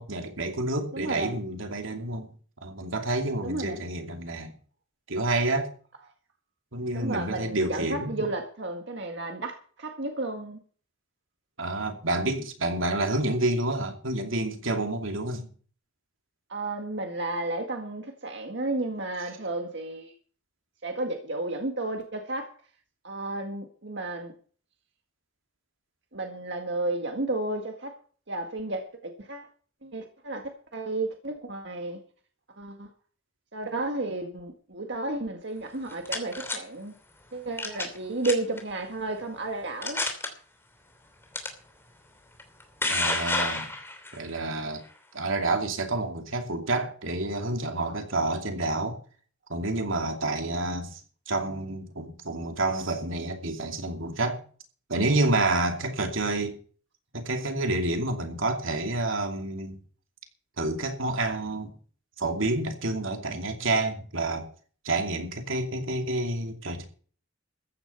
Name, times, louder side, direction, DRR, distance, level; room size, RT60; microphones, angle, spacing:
voice 1, 0.0-2.3 2.6-4.5 5.1-5.7 6.7-8.3 11.6-15.5 42.9-43.7 44.1-44.8 45.1-49.0 49.5-51.0 51.3-54.4 54.9-56.6 57.1-59.8 60.6-61.7 62.2-64.5 64.8-66.8, right 2 dB, 80° right, 2.8 m, -29 dB
voice 2, 0.9-1.4 3.4-3.8 6.9-10.6 16.5-20.1 20.8-22.5 23.0-24.3 26.1-27.9 28.3-29.5 29.8-32.0 32.6-32.9 33.5-36.9 37.3-40.0, right 2 dB, 60° right, 1.9 m, -32 dB
sound 1, 35.7-36.6 37.6-38.0 38.2-38.6 39.2-39.3 39.8-40.3 41.3-41.5 42.4-44.2, left 2 dB, 10° left, 3.0 m, -29 dB
14.5 x 10.5 x 5.6 m
head